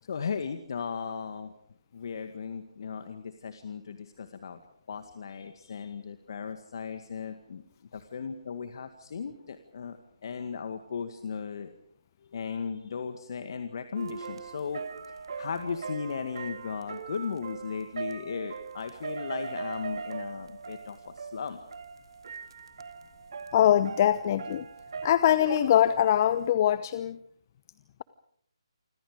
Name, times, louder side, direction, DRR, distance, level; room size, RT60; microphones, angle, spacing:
voice 1, 0.0-1.5 1.9-4.6 4.9-7.6 7.9-11.7 12.3-21.6, left 6 dB, 50° left, 8 dB, 2.1 m, -36 dB
sound 1, 14.0-26.5, right 5 dB, 60° right, 2.2 m, -40 dB
voice 2, 23.5-24.7 25.0-27.2, left 11 dB, 35° left, 14 dB, 0.9 m, -23 dB
29.0 x 25.5 x 5.1 m, 0.66 s
figure-of-eight pair, 150°, 3 cm